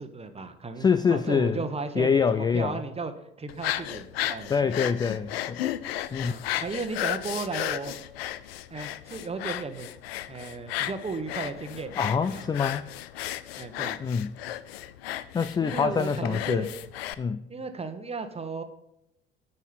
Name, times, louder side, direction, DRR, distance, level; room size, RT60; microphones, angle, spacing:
voice 1, 0.0-3.1 3.4-4.7 6.2-8.0 8.7-9.9 10.3-11.9 12.3-12.5 13.6-14.0 15.6-16.7 17.5-18.6, right 4 dB, 20° right, 1.1 m, -35 dB
voice 2, 0.8-1.6 2.0-2.8 4.5-5.6 6.1-6.4 12.0-12.9 14.0-14.3 15.3-16.7 17.2-17.5, left 6 dB, 15° left, 0.3 m, -25 dB
sound 1, 3.5-17.1, left 13 dB, 75° left, 0.5 m, -34 dB
9.3 x 5.4 x 5.7 m
figure-of-eight pair, 60°, 31 cm